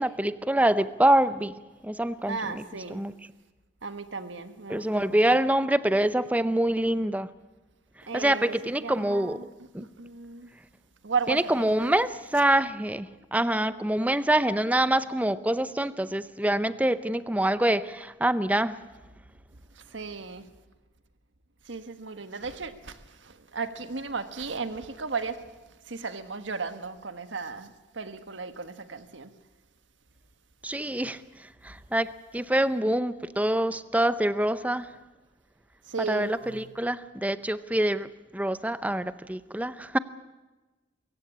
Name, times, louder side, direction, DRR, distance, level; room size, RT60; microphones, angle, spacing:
voice 1, 0.0-1.5 1.8-2.4 2.9-3.1 4.7-7.3 8.1-9.4 9.7-9.9 11.3-18.8 30.6-31.2 31.6-34.9 36.1-40.0, right 1 dB, 10° right, 0.6 m, -25 dB
voice 2, 2.3-3.0 3.8-5.4 8.1-10.5 11.0-11.9 19.9-20.4 21.7-25.4 25.9-29.3 35.9-36.7, right 4 dB, 80° right, 1.4 m, -35 dB
23.5 x 15.5 x 8.6 m
head